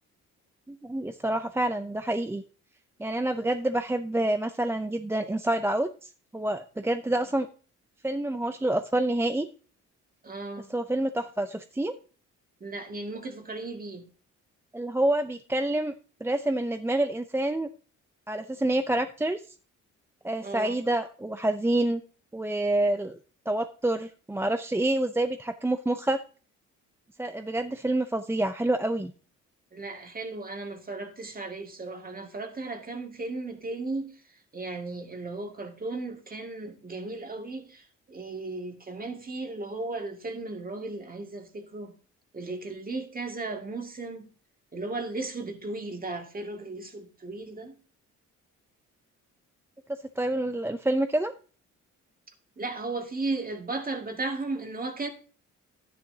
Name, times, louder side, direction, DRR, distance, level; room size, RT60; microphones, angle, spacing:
voice 1, 0.7-2.4 3.0-7.5 8.0-9.5 10.7-11.9 14.7-15.9 16.2-17.7 18.3-19.4 20.2-22.0 22.3-23.2 23.5-26.2 27.2-29.1 50.2-51.3, right 1 dB, 10° right, 0.5 m, -27 dB
voice 2, 10.2-10.7 12.6-14.0 20.4-20.8 29.7-34.1 34.5-41.9 42.3-44.2 44.7-47.8 52.6-55.1, right 3 dB, 30° right, 2.1 m, -35 dB
11.5 x 10.0 x 2.8 m
cardioid pair, 90°, 30 cm